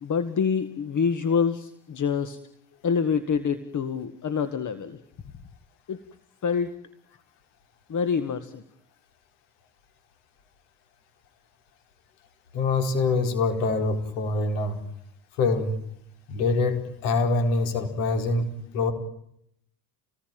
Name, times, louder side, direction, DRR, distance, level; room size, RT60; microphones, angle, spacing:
voice 1, 0.0-2.4 2.8-5.0 5.9-6.0 6.4-6.7 7.9-8.6, left 6 dB, 40° left, 12 dB, 1.9 m, -26 dB
voice 2, 12.5-14.8 15.4-15.7 16.3-18.5 18.7-18.9, left 3 dB, 70° left, 8 dB, 4.7 m, -24 dB
27.5 x 19.5 x 9.1 m, 0.73 s
hypercardioid pair, 70°, 48 cm